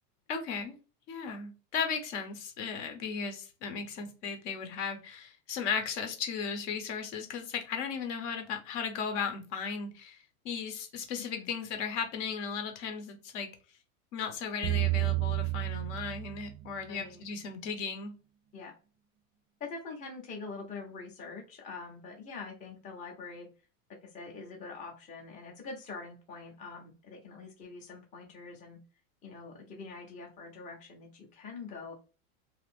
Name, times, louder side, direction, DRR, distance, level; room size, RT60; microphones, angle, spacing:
voice 1, 0.3-0.7 1.1-13.5 14.1-18.1, left 6 dB, 55° left, 5 dB, 0.9 m, -36 dB
voice 2, 11.2-11.5 16.9-17.2 18.5-18.7 19.6-23.5 24.0-28.8 29.2-31.9, left 4 dB, 20° left, 0 dB, 0.7 m, -44 dB
sound 1, 14.6-16.9, right 19 dB, 35° right, 0.5 m, -31 dB
2.7 x 2.4 x 3.4 m, 0.33 s
supercardioid pair, 140°, 42 cm